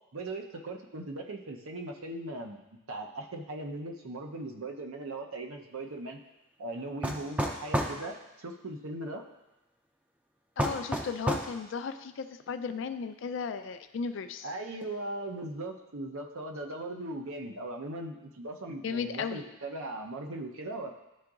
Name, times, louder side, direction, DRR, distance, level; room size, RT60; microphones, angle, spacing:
voice 1, 0.1-2.6 2.9-6.2 6.6-9.3 14.4-20.9, right 2 dB, 85° right, 2 dB, 0.7 m, -39 dB
sound 1, 7.0-8.0 10.6-11.5, equal, 5° right, 0.4 m, -29 dB
voice 2, 10.6-14.5 18.8-19.5, left 5 dB, 60° left, 10 dB, 0.3 m, -35 dB
11.0 x 3.8 x 2.4 m, 0.98 s
head